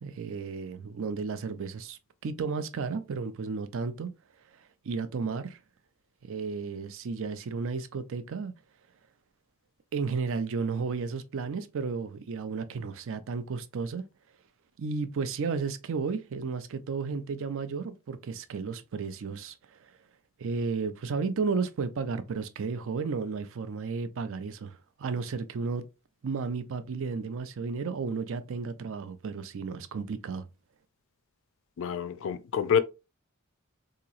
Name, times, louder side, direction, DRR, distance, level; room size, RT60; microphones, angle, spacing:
voice 1, 0.0-4.1 4.8-5.6 6.2-8.5 9.9-14.1 14.8-19.9 20.4-25.8 26.2-30.5, right 4 dB, 65° right, 0.4 m, -33 dB
voice 2, 31.8-32.8, left 7 dB, 60° left, 0.4 m, -27 dB
3.8 x 2.9 x 2.4 m
head